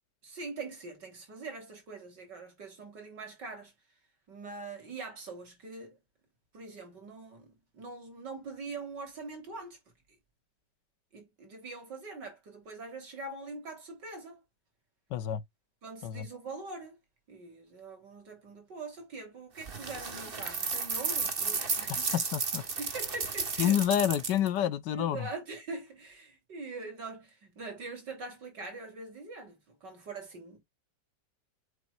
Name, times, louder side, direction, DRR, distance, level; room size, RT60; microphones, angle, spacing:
voice 1, 0.2-3.7 4.3-6.0 6.5-7.5 7.7-9.8 11.1-14.4 15.8-17.0 17.3-22.2 22.8-23.8 24.9-30.6, right 3 dB, 75° right, 4.1 m, -43 dB
voice 2, 15.1-15.4 16.0-16.3 22.1-22.6 23.6-25.3, left 10 dB, 80° left, 1.5 m, -28 dB
sound 1, 19.6-24.5, right 4 dB, 35° right, 1.5 m, -33 dB
7.7 x 6.0 x 2.4 m
omnidirectional pair, 1.9 m